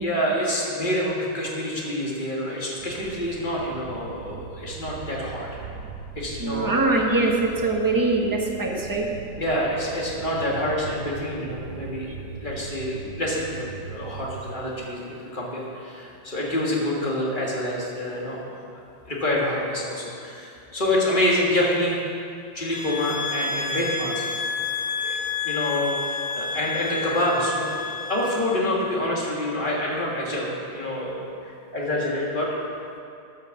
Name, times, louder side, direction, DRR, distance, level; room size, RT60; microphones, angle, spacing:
voice 1, 0.0-5.5 6.2-6.8 9.4-18.5 19.1-22.0 22.5-24.2 25.0-25.2 25.4-27.8 28.0-32.5, left 1 dB, 25° left, -4 dB, 2.2 m, -27 dB
sound 1, 2.8-14.6, right 6 dB, 60° right, 1.1 m, -40 dB
voice 2, 6.4-9.1, right 2 dB, 15° right, -1 dB, 1.0 m, -23 dB
sound 2, 22.7-28.6, left 4 dB, 50° left, 1.2 m, -30 dB
12.5 x 6.7 x 7.3 m, 2.5 s
omnidirectional pair, 2.1 m